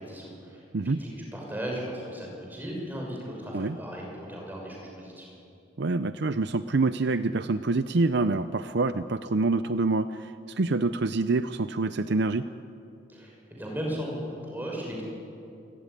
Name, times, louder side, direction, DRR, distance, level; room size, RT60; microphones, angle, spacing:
voice 1, 0.0-5.3 13.1-15.0, equal, 10° right, -2 dB, 6.2 m, -36 dB
voice 2, 5.8-12.5, right 3 dB, 55° right, 12 dB, 0.6 m, -26 dB
28.0 x 15.5 x 10.0 m, 2.7 s
head